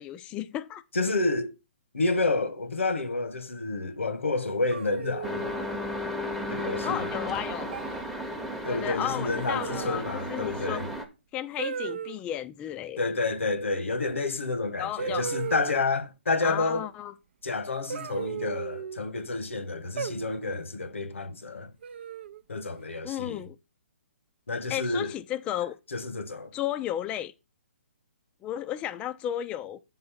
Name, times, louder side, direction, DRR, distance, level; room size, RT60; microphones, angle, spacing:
voice 1, 0.0-0.8 6.8-7.8 8.7-10.8 11.3-13.0 14.8-15.3 16.4-17.1 23.0-23.6 24.7-25.8 26.5-27.3 28.4-29.8, left 11 dB, 15° left, 0.3 m, -33 dB
voice 2, 0.9-1.5 1.9-5.5 6.5-7.1 8.6-10.9 13.0-16.9 17.4-21.7 22.5-23.5 24.5-25.1 25.9-26.5, left 3 dB, 90° left, 1.2 m, -29 dB
sound 1, 4.7-5.6 6.8-7.2 7.7-8.0 9.5-10.1 11.6-12.2 14.1-14.2 15.0-16.0 17.9-19.0 20.0-20.6 21.8-22.4, right 7 dB, 60° right, 0.5 m, -36 dB
sound 2, 5.2-11.1, left 1 dB, ahead, 0.8 m, -34 dB
7.7 x 4.0 x 5.6 m
hypercardioid pair, 145°, 7 cm